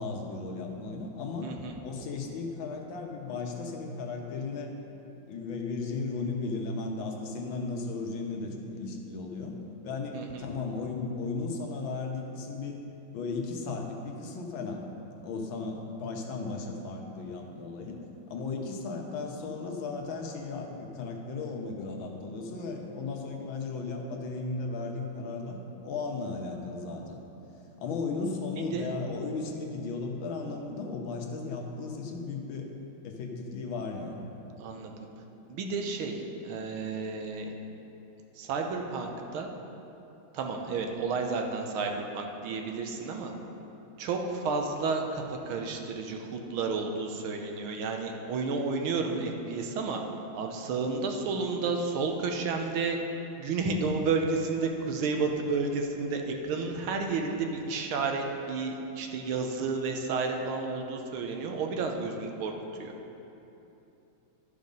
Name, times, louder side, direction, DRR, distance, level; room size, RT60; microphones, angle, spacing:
voice 1, 0.0-1.5 1.8-4.7 5.3-9.6 9.8-12.8 13.1-14.8 15.2-27.2 27.8-32.7 33.0-34.2, left 3 dB, 75° left, 2 dB, 1.6 m, -35 dB
voice 2, 1.4-1.7 10.1-10.4 28.7-28.9 34.6-35.1 35.5-37.5 38.4-39.5 40.3-43.3 44.0-50.0 50.3-53.0 53.4-62.5 62.8-62.9, right 4 dB, 85° right, 3 dB, 1.7 m, -31 dB
12.0 x 5.2 x 5.3 m, 2.9 s
omnidirectional pair, 2.2 m